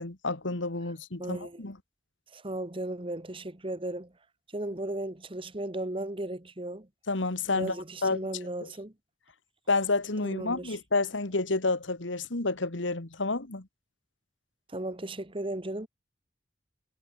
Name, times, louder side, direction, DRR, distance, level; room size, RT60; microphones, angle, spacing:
voice 1, 0.0-1.8 7.1-7.8 8.0-8.2 8.6-8.7 9.7-13.7, left 3 dB, 90° left, 2.1 m, -29 dB
voice 2, 1.2-1.6 2.3-4.1 4.5-6.9 7.5-8.9 10.2-10.8 14.7-15.9, right 1 dB, 30° right, 1.7 m, -36 dB
head